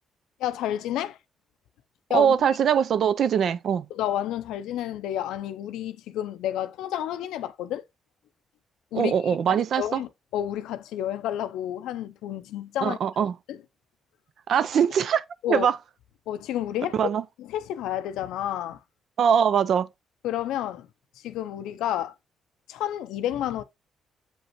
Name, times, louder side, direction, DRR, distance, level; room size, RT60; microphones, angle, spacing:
voice 1, 0.4-1.2 2.1-2.4 3.9-7.8 8.9-13.0 13.5-13.6 15.4-15.7 16.3-17.0 17.4-18.8 20.2-20.9 21.2-22.1 22.7-23.6, left 11 dB, 90° left, 0.5 m, -30 dB
voice 2, 2.1-3.9 8.9-10.0 12.8-13.4 14.5-15.8 16.9-17.2 19.2-19.9, right 8 dB, 60° right, 0.5 m, -22 dB
7.3 x 5.2 x 3.0 m
cardioid pair, 90°, 0 cm